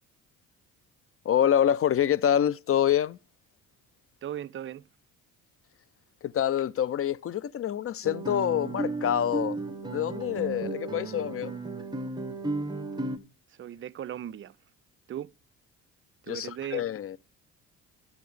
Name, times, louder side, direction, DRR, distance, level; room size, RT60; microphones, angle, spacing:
voice 1, 1.2-3.2 6.2-9.6 9.9-11.5 16.3-17.2, left 10 dB, 35° left, 0.5 m, -26 dB
voice 2, 4.2-4.8 13.6-14.5 15.1-15.3 16.2-16.9, right 10 dB, 30° right, 0.5 m, -37 dB
Guitar, 8.0-13.2, right 3 dB, 10° right, 1.2 m, -34 dB
11.5 x 7.2 x 3.2 m
hypercardioid pair, 55°, 42 cm